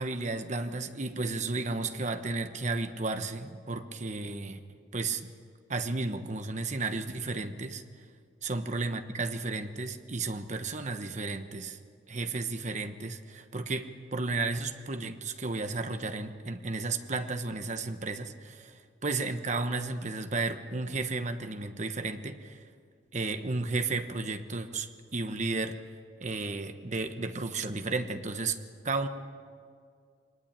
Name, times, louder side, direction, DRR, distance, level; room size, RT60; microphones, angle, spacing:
voice 1, 0.0-4.6 4.9-5.2 5.7-7.8 8.4-11.8 12.1-22.7 23.1-25.8 26.2-28.6 28.8-29.1, right 3 dB, 40° right, 8 dB, 1.2 m, -33 dB
23.0 x 19.5 x 8.8 m, 2.2 s
head